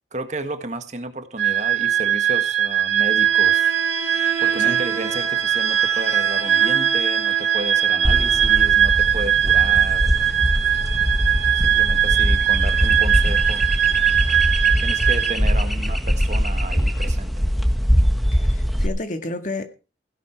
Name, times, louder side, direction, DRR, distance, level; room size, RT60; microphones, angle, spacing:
voice 1, 0.1-3.8 4.4-10.2 11.5-13.7 14.8-17.5, right 2 dB, 40° right, 1.6 m, -32 dB
sound 1, 1.4-15.4, right 10 dB, 80° right, 2.2 m, -20 dB
Bowed string instrument, 3.2-8.8, right 4 dB, 15° right, 2.3 m, -33 dB
sound 2, 8.0-18.9, equal, ahead, 1.3 m, -22 dB
voice 2, 18.3-19.7, left 2 dB, 45° left, 1.9 m, -31 dB
16.5 x 11.0 x 4.6 m
head